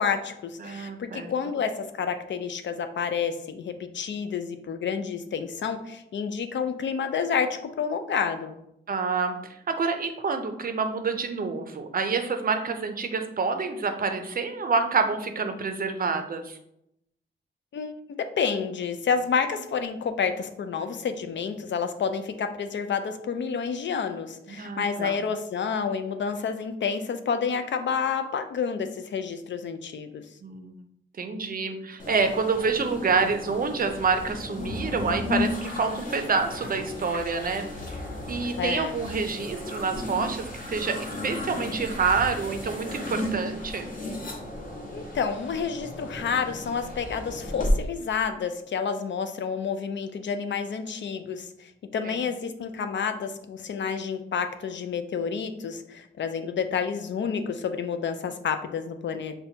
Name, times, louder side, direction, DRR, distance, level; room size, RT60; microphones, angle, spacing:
voice 1, 0.0-8.6 17.7-30.2 38.6-39.0 44.9-59.3, left 6 dB, 65° left, 8 dB, 0.4 m, -29 dB
voice 2, 0.6-1.3 8.9-9.4 9.7-16.6 24.5-25.2 30.4-30.7 31.2-37.7 38.3-43.9 52.0-52.2, right 4 dB, 45° right, 6 dB, 0.5 m, -27 dB
sound 1, 32.0-47.7, left 1 dB, 45° left, 1.1 m, -34 dB
5.7 x 2.2 x 2.8 m, 0.78 s
wide cardioid pair, 120°, 20 cm